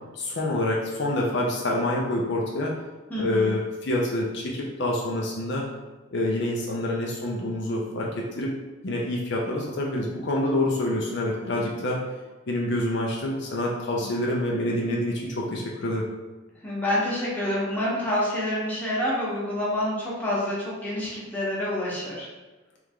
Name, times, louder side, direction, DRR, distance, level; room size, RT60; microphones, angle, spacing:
voice 1, 0.1-2.7 3.1-5.6 6.1-8.5 8.8-12.0 12.5-16.1, left 1 dB, 60° left, -2 dB, 0.6 m, -27 dB
voice 2, 3.1-3.6 16.6-22.3, left 1 dB, 10° left, -7 dB, 1.0 m, -27 dB
3.5 x 3.2 x 3.6 m, 1.2 s
head